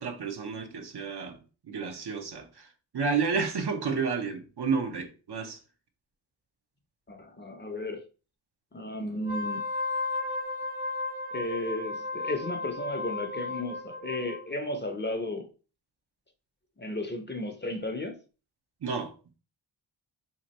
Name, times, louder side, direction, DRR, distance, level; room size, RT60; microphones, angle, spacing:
voice 1, 0.0-1.4 1.7-2.7 2.9-5.6 18.8-19.1, right 5 dB, 55° right, 0.9 m, -31 dB
voice 2, 7.1-8.0 8.7-9.6 11.3-15.5 16.8-18.2, left 1 dB, 25° left, 0.7 m, -34 dB
Wind instrument woodwind instrument, 9.2-14.4, left 3 dB, 85° right, 0.7 m, -34 dB
2.9 x 2.5 x 4.1 m
cardioid pair, 50°, 47 cm